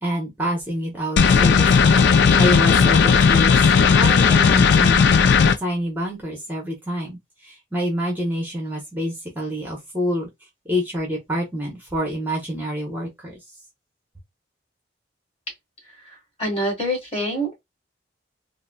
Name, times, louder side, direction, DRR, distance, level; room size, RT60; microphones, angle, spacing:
voice 1, 0.0-2.0 2.3-5.0 5.6-10.3 10.7-13.4, equal, 10° right, 0.9 m, -27 dB
sound 1, 1.2-5.6, left 6 dB, 65° left, 0.4 m, -15 dB
voice 2, 16.4-17.6, equal, 35° left, 1.6 m, -25 dB
3.8 x 2.1 x 2.2 m
head